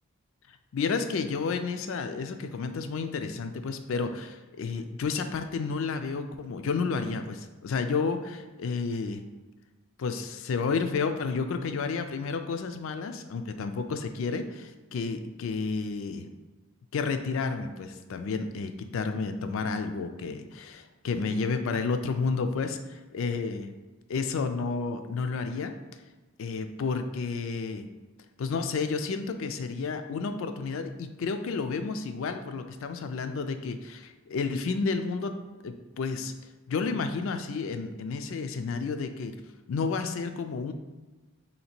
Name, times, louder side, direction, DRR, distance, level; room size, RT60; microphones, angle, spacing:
voice 1, 0.7-9.2 10.0-16.3 16.9-23.7 24.1-25.8 26.4-27.9 28.4-35.3 35.6-36.3 36.7-39.4 39.7-40.7, left 4 dB, 60° left, 7 dB, 0.3 m, -31 dB
3.1 x 2.8 x 4.3 m, 1.2 s
head